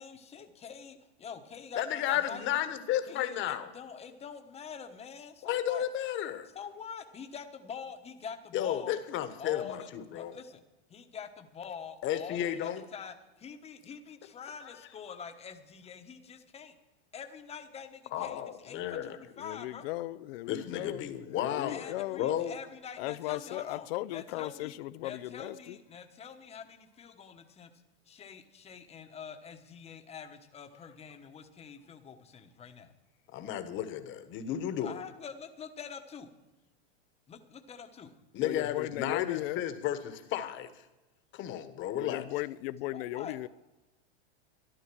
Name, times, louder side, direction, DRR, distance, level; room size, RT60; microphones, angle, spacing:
voice 1, 0.0-2.6 3.1-5.9 6.5-8.9 9.4-10.6 10.9-16.7 17.1-19.9 21.7-27.7 28.1-32.9 34.8-36.3 37.3-38.1 42.9-43.4, left 6 dB, 20° left, 1.1 m, -45 dB
voice 2, 1.8-3.7 5.4-6.5 8.5-10.4 12.0-12.8 18.1-19.2 20.5-22.5 23.3-23.4 33.3-35.0 38.3-40.7 41.3-42.2, left 11 dB, 35° left, 1.3 m, -33 dB
voice 3, 19.4-22.3 23.0-25.8 38.4-39.6 41.9-43.5, left 17 dB, 60° left, 0.6 m, -37 dB
13.0 x 11.0 x 6.1 m
supercardioid pair, 135°, 34 cm